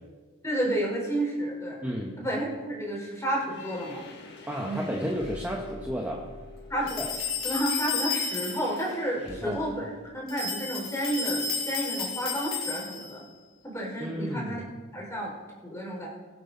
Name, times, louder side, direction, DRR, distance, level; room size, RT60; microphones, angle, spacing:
voice 1, 0.4-1.8 2.2-4.0 4.6-4.8 6.7-7.0 7.4-13.2 13.6-14.6 14.9-15.3 15.6-16.1, right 1 dB, 15° left, -3 dB, 4.0 m, -31 dB
voice 2, 1.8-2.2 4.5-6.3 7.0-7.1 9.2-9.6 14.0-14.7, equal, 10° right, -2 dB, 1.1 m, -32 dB
sound 1, 3.4-9.9, left 3 dB, 50° left, 1.8 m, -47 dB
sound 2, 6.9-8.8 10.3-13.2, left 5 dB, 70° left, 3.4 m, -32 dB
23.0 x 8.7 x 4.0 m, 1.3 s
head